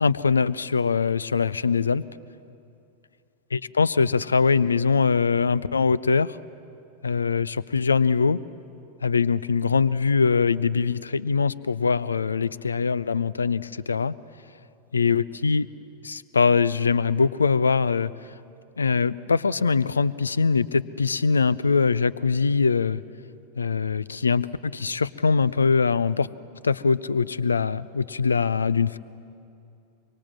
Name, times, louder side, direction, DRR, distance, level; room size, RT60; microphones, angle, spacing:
voice 1, 0.0-2.0 3.5-6.4 7.0-8.4 9.0-14.1 14.9-15.7 16.0-18.1 18.8-23.0 23.6-26.3 26.6-29.0, left 5 dB, 75° left, 20 dB, 0.5 m, -22 dB
24.0 x 24.0 x 7.4 m, 2.6 s
figure-of-eight pair, 90°, 0 cm